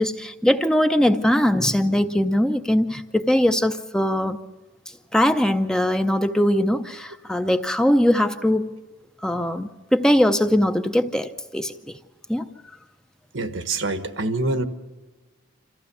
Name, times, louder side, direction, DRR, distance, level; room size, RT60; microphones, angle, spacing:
voice 1, 0.0-4.4 5.1-8.7 9.2-11.7 12.3-12.5, left 1 dB, 5° left, 8 dB, 0.5 m, -21 dB
voice 2, 13.3-14.6, right 2 dB, 80° right, 9 dB, 1.3 m, -25 dB
27.0 x 14.5 x 6.9 m, 1.3 s
head